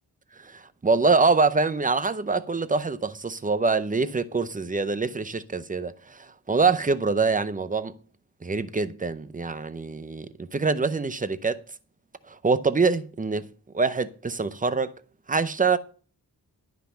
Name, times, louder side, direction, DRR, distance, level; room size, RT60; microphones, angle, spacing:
voice 1, 0.4-8.0 8.4-11.6 12.3-13.5 13.7-14.9 15.3-15.8, right 4 dB, 20° right, 0.6 m, -25 dB
12.5 x 5.7 x 6.8 m
wide cardioid pair, 170°, 40 cm